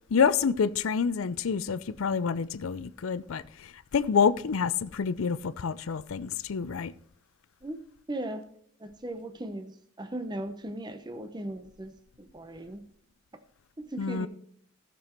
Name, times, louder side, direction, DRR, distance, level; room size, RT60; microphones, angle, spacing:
voice 1, 0.1-3.4 3.9-6.9 14.0-14.3, left 6 dB, 90° left, 0.5 m, -27 dB
voice 2, 8.1-8.4 8.8-11.9 12.2-12.8 13.8-14.3, right 1 dB, 20° right, 0.7 m, -37 dB
13.5 x 6.9 x 4.4 m
head